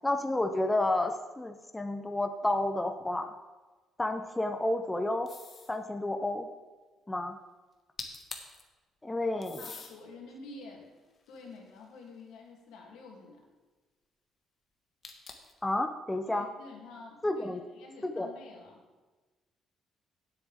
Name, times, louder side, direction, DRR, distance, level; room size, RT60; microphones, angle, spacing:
voice 1, 0.0-3.3 4.0-5.3 5.7-6.5 7.1-7.4 9.0-9.6 15.6-16.5 17.2-17.6 18.0-18.3, left 1 dB, 10° left, 7 dB, 0.6 m, -30 dB
sound 1, 5.3-5.8 7.7-7.8 8.0-8.6 9.4-9.9 10.6-12.1 15.0-15.6, left 5 dB, 35° left, 1.4 m, -45 dB
voice 2, 9.6-10.9 11.3-13.4 16.3-18.8, left 3 dB, 85° left, 0 dB, 2.7 m, -49 dB
17.0 x 8.1 x 3.6 m, 1.3 s
cardioid pair, 145°, 0 cm